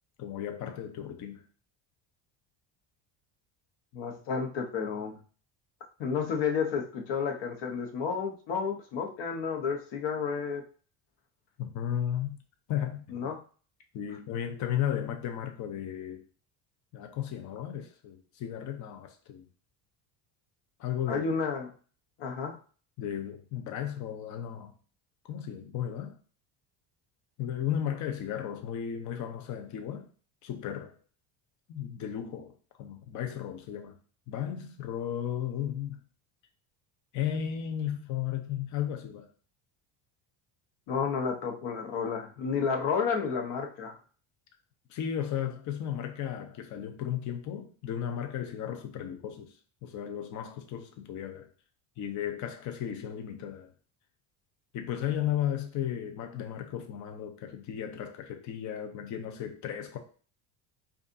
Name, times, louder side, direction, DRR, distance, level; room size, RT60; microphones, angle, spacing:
voice 1, 0.2-1.4 11.6-12.4 12.7-13.3 13.9-16.2 16.9-19.5 20.8-21.2 23.0-24.7 25.3-26.2 27.4-30.1 30.4-31.0 31.7-34.0 34.3-36.0 37.1-39.3 44.9-49.5 49.8-51.5 52.0-53.7 54.7-60.0, left 10 dB, 40° left, 0.6 m, -34 dB
voice 2, 3.9-5.2 6.0-10.6 13.1-13.4 21.1-21.7 22.2-22.6 40.9-44.0, left 6 dB, 65° left, 1.0 m, -31 dB
5.2 x 2.5 x 2.6 m
cardioid pair, 155°, 45 cm